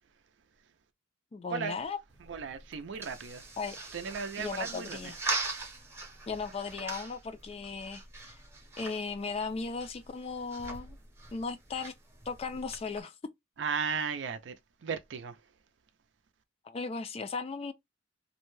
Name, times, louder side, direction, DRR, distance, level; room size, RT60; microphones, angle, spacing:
voice 1, 1.3-2.0 3.6-3.8 4.4-5.2 6.3-8.4 8.8-11.0 11.3-11.9 12.3-13.1 16.6-17.7, left 4 dB, 35° left, 0.3 m, -36 dB
sound 1, 2.1-13.0, right 3 dB, 15° right, 0.7 m, -42 dB
voice 2, 2.3-3.4 3.9-5.1 13.6-14.6 14.8-15.4, right 6 dB, 70° right, 0.4 m, -35 dB
2.6 x 2.1 x 3.0 m
head